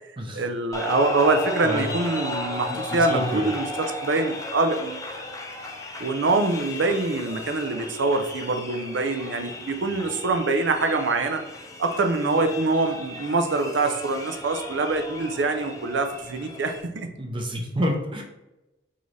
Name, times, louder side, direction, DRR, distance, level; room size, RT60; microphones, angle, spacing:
voice 1, 0.3-3.7 4.0-5.0 6.0-11.4 11.8-17.1, right 3 dB, 75° right, 7 dB, 0.5 m, -24 dB
sound 1, 0.7-16.8, left 2 dB, 20° left, 0.5 m, -35 dB
voice 2, 2.7-3.5 17.2-18.2, equal, 25° right, 1 dB, 0.7 m, -28 dB
4.0 x 3.7 x 3.2 m, 0.99 s
head